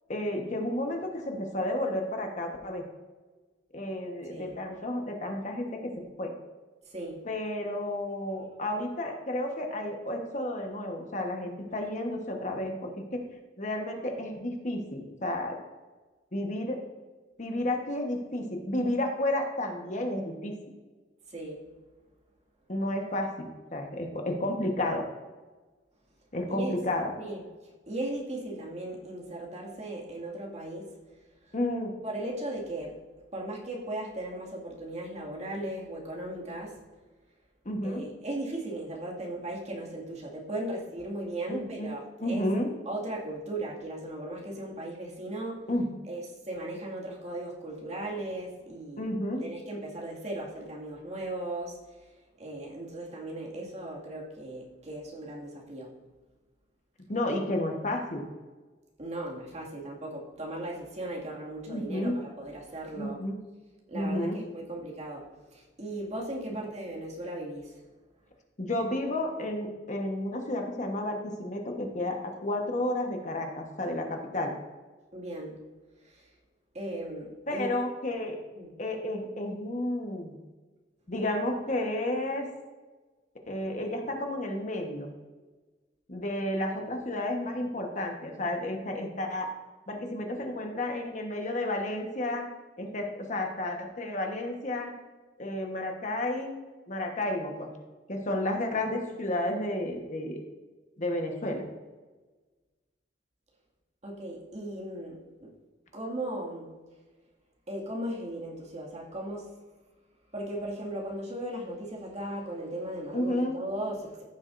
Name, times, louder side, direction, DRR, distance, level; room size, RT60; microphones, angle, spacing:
voice 1, 0.1-2.8 3.7-5.9 6.2-6.3 7.2-13.2 13.6-15.6 16.3-16.8 17.4-20.5 22.7-25.0 26.3-27.1 31.5-31.9 37.6-38.0 41.5-41.9 42.2-42.7 45.7-46.0 49.0-49.4 57.1-58.2 61.7-62.2 63.0-63.4 63.9-64.4 68.6-74.5 77.5-78.4 78.8-80.4 81.1-82.5 83.4-85.1 86.1-89.5 89.9-92.5 92.8-94.9 95.4-96.6 96.9-97.7 98.1-100.4 101.0-101.6 113.1-113.5, left 1 dB, 40° left, 3 dB, 1.2 m, -31 dB
voice 2, 6.9-7.2 21.3-21.6 26.5-26.7 27.2-27.5 27.9-30.9 31.4-31.5 32.0-33.0 33.3-36.8 37.8-42.4 42.9-45.7 46.1-49.1 49.4-52.1 52.4-56.0 59.0-63.2 63.9-67.8 75.1-75.6 76.0-76.3 76.7-77.7 78.5-78.7 98.7-98.8 104.0-105.5 105.9-106.7 107.7-109.5 110.3-114.2, right 1 dB, 40° right, -3 dB, 2.1 m, -37 dB
15.0 x 7.1 x 2.6 m, 1.3 s
head